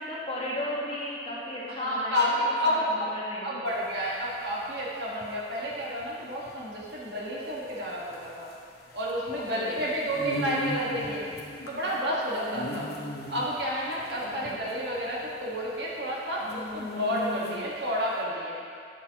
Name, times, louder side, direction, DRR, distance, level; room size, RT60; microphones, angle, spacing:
voice 1, 0.0-3.7 9.3-9.8 12.7-12.8 14.2-14.6, left 1 dB, 35° left, -7 dB, 1.5 m, -36 dB
voice 2, 1.7-3.1 3.4-8.5 8.9-11.2 11.7-12.9 13.3-18.6, equal, 65° right, -5 dB, 1.5 m, -30 dB
sound 1, 3.7-17.9, left 1 dB, 65° left, 0.9 m, -39 dB
9.3 x 6.2 x 2.9 m, 2.3 s
head